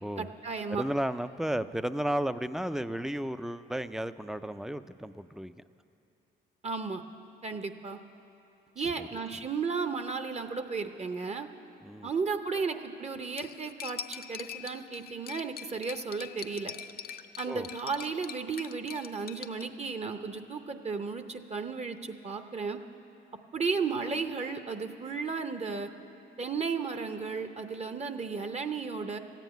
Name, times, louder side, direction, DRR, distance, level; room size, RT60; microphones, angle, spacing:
voice 1, 0.2-0.8 6.6-7.0 7.4-8.0 8.8-11.5 12.0-16.7 17.4-22.8 23.5-25.9 26.4-29.2, right 5 dB, 35° right, 8 dB, 0.7 m, -34 dB
voice 2, 0.7-5.5 9.0-9.1 11.8-12.1 17.5-17.7, right 1 dB, ahead, 13 dB, 0.4 m, -33 dB
Cutlery silverware, 13.4-19.6, left 8 dB, 50° left, 0.5 m, -43 dB
14.0 x 9.2 x 9.2 m, 2.9 s
cardioid pair, 90°, 20 cm